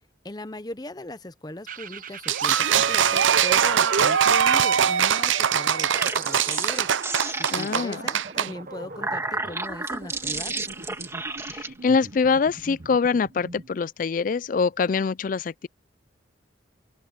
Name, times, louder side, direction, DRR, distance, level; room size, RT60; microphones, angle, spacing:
voice 1, 0.2-10.6, left 1 dB, 20° left, 0.8 m, -39 dB
sound 1, 1.7-13.7, right 4 dB, 45° right, 1.1 m, -41 dB
sound 2, 2.3-8.5, right 8 dB, 85° right, 0.7 m, -21 dB
sound 3, 5.8-8.0 8.7-11.7, right 3 dB, 15° right, 2.3 m, -32 dB
voice 2, 7.5-8.0 11.4-15.7, left 5 dB, 45° left, 0.3 m, -24 dB
open air
head